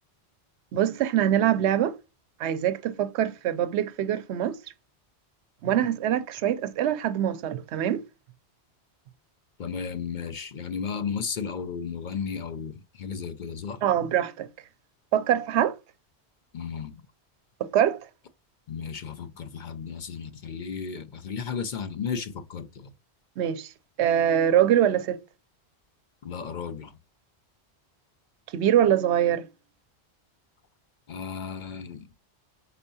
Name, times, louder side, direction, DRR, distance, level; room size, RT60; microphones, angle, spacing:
voice 1, 0.7-1.9 2.4-4.6 5.6-8.0 13.8-14.5 15.1-15.8 17.6-18.0 23.4-23.7 24.0-25.2 28.5-29.5, right 10 dB, 85° right, 0.9 m, -24 dB
voice 2, 9.6-13.8 16.5-17.0 18.7-22.9 26.2-26.9 31.1-32.1, left 6 dB, 55° left, 0.6 m, -34 dB
4.5 x 4.3 x 2.6 m
omnidirectional pair, 1.1 m